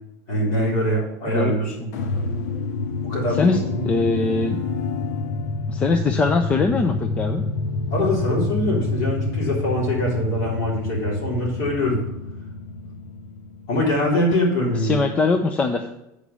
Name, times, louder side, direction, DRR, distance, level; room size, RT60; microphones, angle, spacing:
voice 1, 0.3-1.9 3.0-3.4 3.7-3.8 7.9-12.0 13.7-15.0, left 1 dB, 45° left, -3 dB, 3.5 m, -23 dB
voice 2, 1.3-1.7 3.4-3.6 3.8-4.6 5.7-7.5 14.8-15.9, left 3 dB, 15° left, 6 dB, 0.4 m, -22 dB
sound 1, 1.9-14.2, left 3 dB, 85° left, 0.8 m, -28 dB
8.3 x 5.1 x 6.8 m, 0.86 s
supercardioid pair, 175°, 9 cm